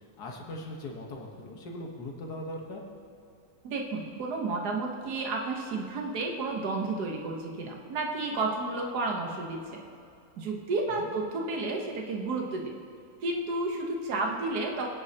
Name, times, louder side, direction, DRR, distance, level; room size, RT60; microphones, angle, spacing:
voice 1, 0.0-2.8 11.0-11.1, left 1 dB, 85° left, 0 dB, 1.9 m, -40 dB
voice 2, 3.6-9.8 10.4-12.8 13.2-15.0, right 3 dB, 85° right, 0 dB, 1.7 m, -31 dB
21.5 x 9.8 x 2.9 m, 2.5 s
omnidirectional pair, 1.7 m